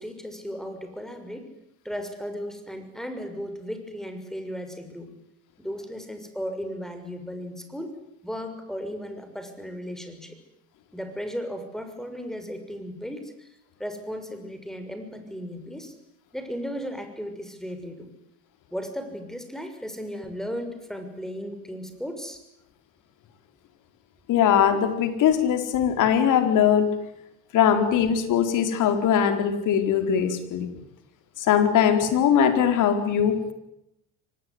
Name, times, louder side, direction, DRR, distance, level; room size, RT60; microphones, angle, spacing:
voice 1, 0.0-1.5 1.8-5.1 5.6-7.9 8.2-10.4 10.9-13.5 13.8-15.9 16.3-18.1 18.7-22.4, equal, ahead, 8 dB, 6.4 m, -35 dB
voice 2, 24.3-26.9 27.5-30.7 31.4-33.5, left 8 dB, 55° left, 8 dB, 4.5 m, -21 dB
24.5 x 19.5 x 9.7 m, 0.83 s
supercardioid pair, 85°, 36 cm